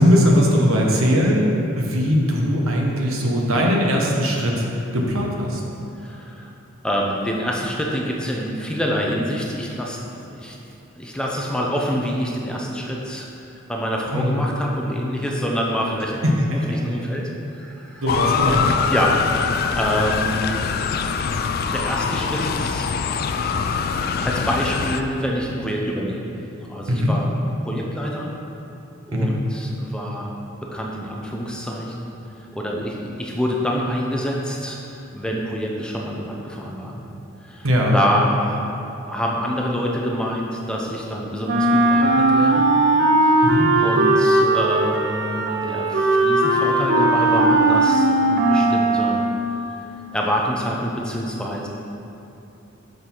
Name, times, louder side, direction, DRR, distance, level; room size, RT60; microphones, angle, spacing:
voice 1, 0.0-1.5 1.8-4.6 4.9-5.6 14.1-14.3 16.2-16.8 18.0-18.8 26.9-27.1 29.1-29.3 37.6-38.0 43.4-43.7, equal, 75° right, -1 dB, 1.1 m, -19 dB
voice 2, 5.9-6.5 6.8-10.6 11.0-13.3 13.7-18.0 18.9-20.7 21.7-22.9 23.6-26.3 26.7-27.3 27.6-28.5 29.1-30.3 30.6-32.1 32.4-37.0 37.4-38.7 39.1-42.6 43.2-43.5 43.8-49.2 50.1-51.7, equal, 5° left, -2 dB, 0.6 m, -26 dB
Motor vehicle (road) / Siren, 18.1-25.0, left 6 dB, 45° left, 0.3 m, -23 dB
Wind instrument woodwind instrument, 41.4-49.6, right 2 dB, 55° right, 0.7 m, -18 dB
6.6 x 5.5 x 4.5 m, 2.8 s
head